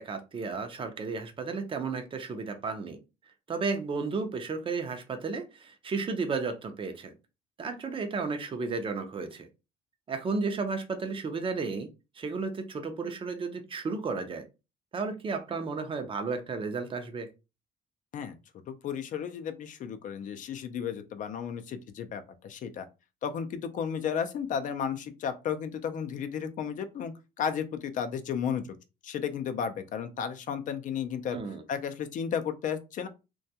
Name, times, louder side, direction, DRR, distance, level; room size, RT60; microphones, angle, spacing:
voice 1, 0.0-3.0 3.5-7.1 7.6-9.5 10.1-11.9 12.2-14.5 14.9-17.3 31.3-31.6, right 4 dB, 30° right, 0.5 m, -33 dB
voice 2, 18.7-22.8 23.2-28.7 29.0-31.4 31.7-33.1, left 7 dB, 50° left, 0.4 m, -33 dB
2.2 x 2.2 x 2.7 m
cardioid pair, 110°, 17 cm